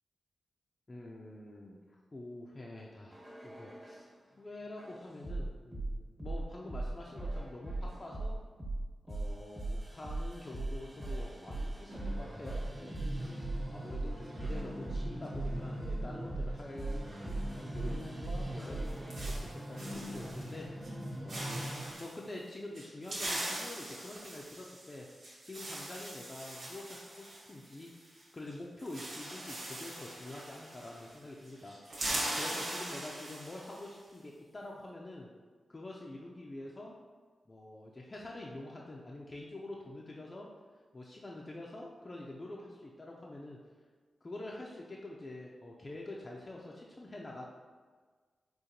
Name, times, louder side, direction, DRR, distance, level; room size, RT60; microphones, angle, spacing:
voice 1, 0.9-4.1 4.4-8.4 9.1-13.0 13.7-17.0 17.5-20.7 21.2-21.5 22.0-25.1 25.4-27.9 28.3-31.8 32.3-35.3 35.7-36.9 37.5-40.5 40.9-43.6 44.2-47.5, left 2 dB, 35° left, -2 dB, 0.4 m, -46 dB
sound 1, 3.1-4.1 4.8-19.4 20.1-20.5, right 2 dB, 25° right, 1.2 m, -39 dB
sound 2, 11.9-21.9, equal, 45° right, 0.7 m, -43 dB
sound 3, 18.6-20.6 20.8-21.0 21.3-22.2 22.7-28.2 28.5-28.6 28.8-31.2 31.5-33.9, right 1 dB, 75° right, 1.0 m, -41 dB
3.8 x 2.5 x 2.8 m, 1.5 s
cardioid pair, 50°, 0 cm